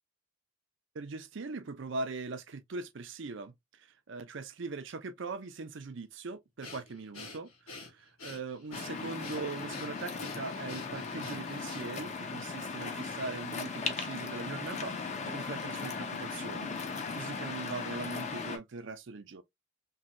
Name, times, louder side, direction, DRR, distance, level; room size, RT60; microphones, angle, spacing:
voice 1, 0.9-14.9 15.3-19.4, right 3 dB, 60° right, 0.5 m, -41 dB
Breathing, 6.6-12.1, left 3 dB, 85° left, 1.5 m, -47 dB
Waves surf, 8.7-18.6, left 4 dB, 35° left, 0.5 m, -38 dB
3.1 x 2.7 x 2.5 m
head